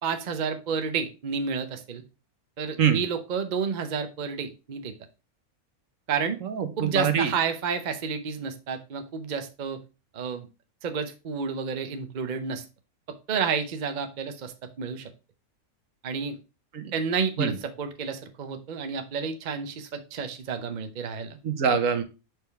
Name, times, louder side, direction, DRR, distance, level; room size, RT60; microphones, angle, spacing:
voice 1, 0.0-2.0 2.6-4.9 6.1-6.4 6.8-9.8 10.1-10.5 10.8-12.6 13.3-15.1 16.0-16.4 16.9-21.4, right 6 dB, 45° right, 7 dB, 0.7 m, -30 dB
voice 2, 6.4-7.3 16.7-16.9 17.4-17.5 21.4-22.0, right 7 dB, 65° right, 8 dB, 1.2 m, -24 dB
5.2 x 4.6 x 4.4 m, 0.30 s
omnidirectional pair, 1.5 m